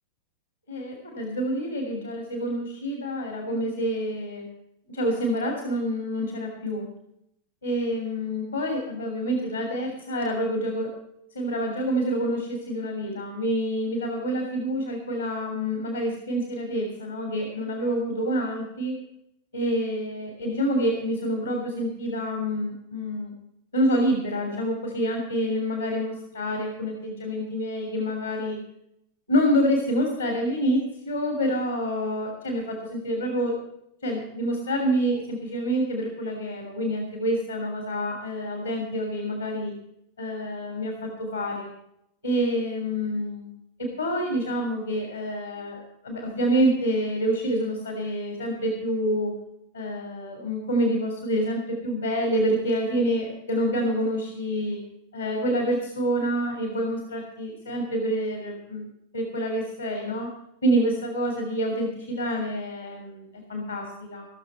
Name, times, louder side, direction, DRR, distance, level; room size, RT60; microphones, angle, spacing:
voice 1, 0.7-4.5 4.9-6.9 7.6-10.9 11.3-18.9 19.5-23.3 23.7-28.6 29.3-33.6 34.0-39.7 40.2-41.7 42.2-49.3 49.7-54.8 55.1-58.9 59.1-60.3 60.6-64.3, equal, 75° left, 2 dB, 3.1 m, -27 dB
16.5 x 6.8 x 8.9 m, 0.78 s
figure-of-eight pair, 90°, 0 cm